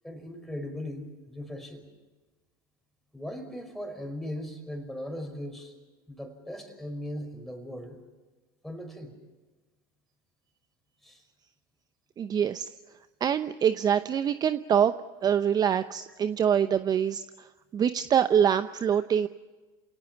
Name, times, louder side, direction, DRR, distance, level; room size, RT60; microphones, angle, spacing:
voice 1, 0.0-1.9 3.1-5.7 6.1-8.0 8.6-9.1 11.0-11.2, left 1 dB, ahead, 4 dB, 5.6 m, -38 dB
voice 2, 12.2-12.7 13.2-14.9 15.2-17.5 17.7-19.3, right 8 dB, 35° right, 12 dB, 0.8 m, -25 dB
28.0 x 18.0 x 7.3 m, 1.2 s
hypercardioid pair, 90°, 12 cm